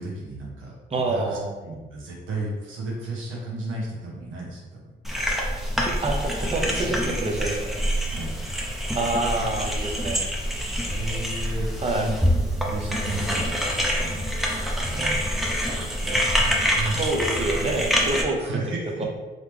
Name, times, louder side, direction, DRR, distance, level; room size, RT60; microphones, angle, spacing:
voice 1, 0.0-4.8 8.1-8.4 10.6-15.4 15.7-17.1 18.4-19.1, right 2 dB, 80° right, -4 dB, 1.3 m, -34 dB
voice 2, 0.9-1.5 5.8-7.8 8.9-10.3 11.8-12.1 16.9-18.6 19.0-19.1, right 2 dB, 30° right, 0 dB, 0.8 m, -27 dB
sound 1, 5.0-18.2, equal, ahead, 0.8 m, -26 dB
3.9 x 3.1 x 3.4 m, 1.2 s
cardioid pair, 90°, 20 cm